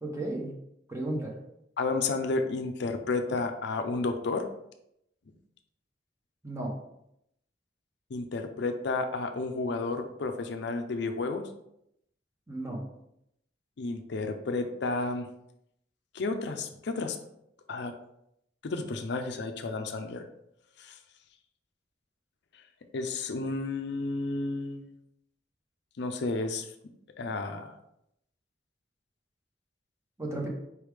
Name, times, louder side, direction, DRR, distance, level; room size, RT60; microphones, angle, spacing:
voice 1, 0.0-0.5 0.9-1.3 6.4-6.7 12.5-12.8 30.2-30.5, right 1 dB, 15° right, -1 dB, 1.0 m, -33 dB
voice 2, 1.8-4.5 8.1-11.4 13.8-15.3 16.1-17.2 17.7-18.0 18.6-20.2 20.8-21.0 22.9-24.9 26.0-26.7 27.2-27.8, left 3 dB, 65° left, 6 dB, 0.5 m, -31 dB
4.7 x 3.2 x 3.4 m, 0.77 s
head